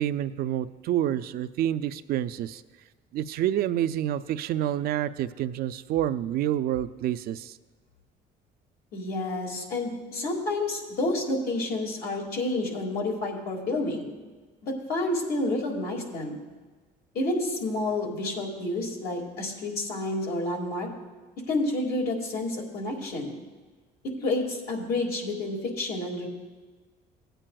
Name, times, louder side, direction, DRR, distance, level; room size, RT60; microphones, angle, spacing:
voice 1, 0.0-2.6 3.1-7.6, right 11 dB, 65° right, 12 dB, 0.4 m, -28 dB
voice 2, 8.9-14.1 14.6-16.4 17.1-20.9 21.5-23.4 24.0-26.3, left 2 dB, 70° left, 0 dB, 2.0 m, -29 dB
16.5 x 8.9 x 2.3 m, 1.4 s
cardioid pair, 110°, 17 cm